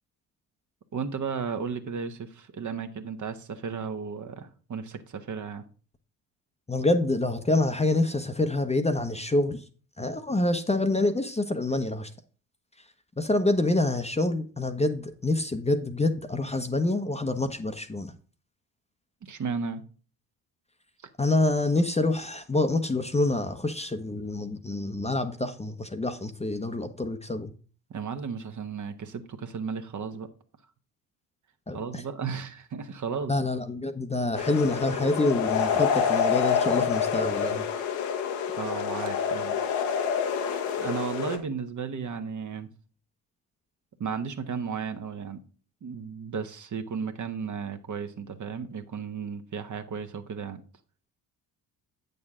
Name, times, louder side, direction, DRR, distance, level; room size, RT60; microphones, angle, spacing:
voice 1, 0.9-5.6 19.2-19.8 27.9-30.3 31.7-33.3 35.9-36.0 38.6-39.6 40.8-42.7 44.0-45.4 45.8-50.6, right 6 dB, 40° right, 1.2 m, -34 dB
voice 2, 6.7-9.6 10.0-12.1 13.2-18.1 21.2-27.5 31.7-32.0 33.3-37.6, left 2 dB, 15° left, 0.9 m, -26 dB
sound 1, 34.3-41.4, left 7 dB, 75° left, 1.3 m, -27 dB
8.5 x 6.7 x 3.7 m
hypercardioid pair, 55°, 46 cm